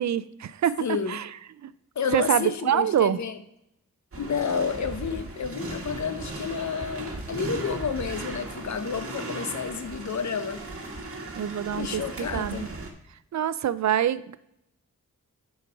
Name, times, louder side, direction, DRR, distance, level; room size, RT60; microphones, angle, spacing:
voice 1, 0.0-1.7 2.1-3.2 11.3-12.7 13.3-14.4, right 10 dB, 60° right, 16 dB, 0.5 m, -26 dB
voice 2, 0.8-1.2 2.0-3.4 4.2-10.6 11.7-12.7, left 6 dB, 60° left, 11 dB, 0.8 m, -30 dB
sound 1, 4.1-12.9, right 2 dB, 45° right, 1.5 m, -37 dB
8.3 x 5.3 x 4.8 m, 0.77 s
wide cardioid pair, 85°, 32 cm